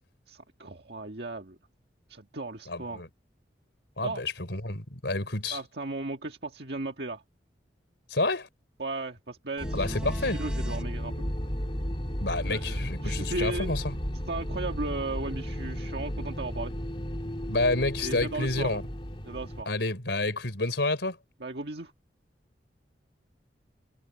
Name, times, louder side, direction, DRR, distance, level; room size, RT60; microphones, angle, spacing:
voice 1, 0.3-1.6 2.1-3.0 4.0-4.2 5.5-7.2 8.8-11.1 12.5-13.8 14.3-16.7 18.0-18.8 19.2-19.7 21.4-21.9, right 2 dB, 65° right, 1.7 m, -36 dB
voice 2, 2.7-3.1 4.0-5.6 8.1-8.5 9.7-10.4 12.2-13.9 17.5-18.8 19.7-21.2, left 2 dB, 80° left, 3.6 m, -29 dB
sound 1, 9.6-19.6, equal, 30° left, 2.6 m, -34 dB
sound 2, 9.6-10.8 14.7-14.8, equal, 5° right, 5.7 m, -46 dB
head